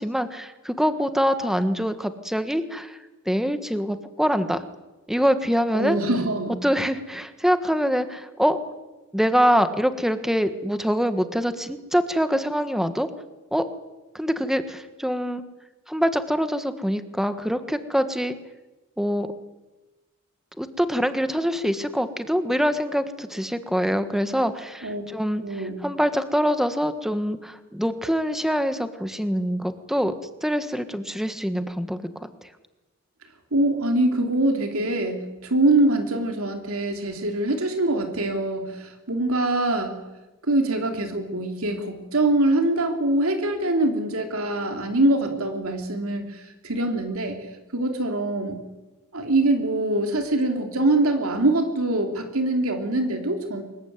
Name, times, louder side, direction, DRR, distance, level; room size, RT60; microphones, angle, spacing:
voice 1, 0.0-4.6 5.1-6.0 6.6-8.6 9.1-13.1 13.5-13.6 14.1-15.4 15.9-18.3 19.0-19.3 20.6-30.1 30.4-32.5, equal, ahead, 10 dB, 1.5 m, -24 dB
voice 2, 5.7-6.6 24.8-25.0 25.4-25.8 33.5-40.0 40.5-47.5 47.7-48.6 49.1-53.6, right 2 dB, 70° right, 4 dB, 3.1 m, -23 dB
25.5 x 22.0 x 9.5 m, 1.1 s
head